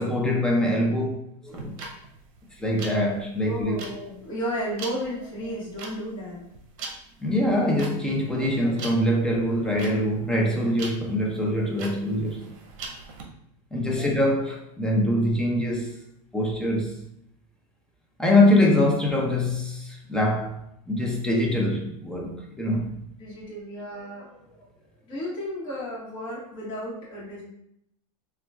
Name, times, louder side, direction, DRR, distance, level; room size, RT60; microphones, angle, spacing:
voice 1, 0.0-1.7 2.6-3.8 7.2-12.5 13.7-16.0 16.3-17.0 18.2-20.6 20.9-23.0, left 1 dB, 5° left, 0.4 m, -24 dB
sound 1, 1.5-13.2, right 3 dB, 60° right, 0.7 m, -41 dB
voice 2, 3.4-6.4 13.8-14.1 23.2-24.7 25.1-27.4, equal, 25° left, 1.2 m, -34 dB
3.8 x 2.2 x 2.3 m
supercardioid pair, 140°, 18 cm